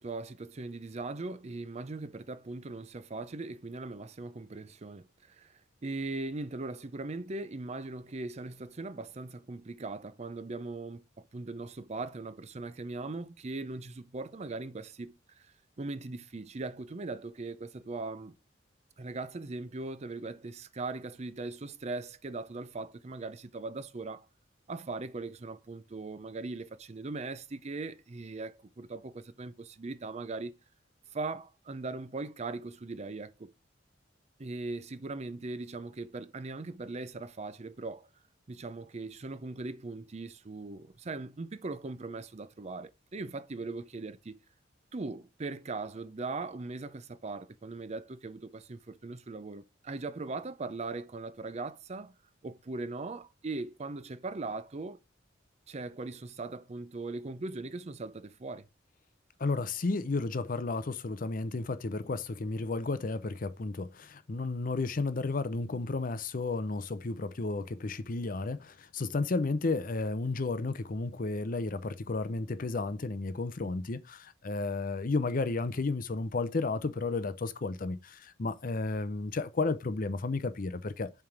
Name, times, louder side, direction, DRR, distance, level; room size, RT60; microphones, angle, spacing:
voice 1, 0.0-5.5 5.8-15.5 15.8-18.4 19.0-24.3 24.7-30.5 31.1-33.5 34.4-38.1 38.5-44.4 44.9-52.1 52.4-55.0 55.7-58.7, right 3 dB, 35° right, 0.5 m, -39 dB
voice 2, 59.4-81.1, left 3 dB, 45° left, 0.6 m, -32 dB
7.3 x 3.4 x 5.8 m
head